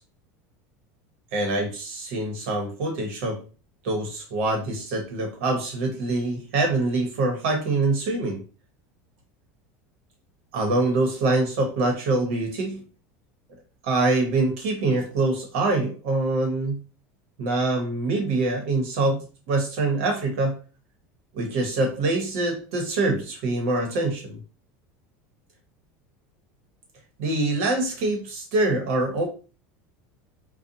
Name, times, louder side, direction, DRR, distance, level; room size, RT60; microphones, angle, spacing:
voice 1, 1.3-3.4 3.8-8.4 10.5-12.8 13.8-16.8 17.4-19.2 19.5-20.6 21.3-24.4 27.2-29.3, right 2 dB, 75° right, 3 dB, 1.1 m, -24 dB
2.5 x 2.3 x 2.7 m, 0.33 s
supercardioid pair, 130°, 7 cm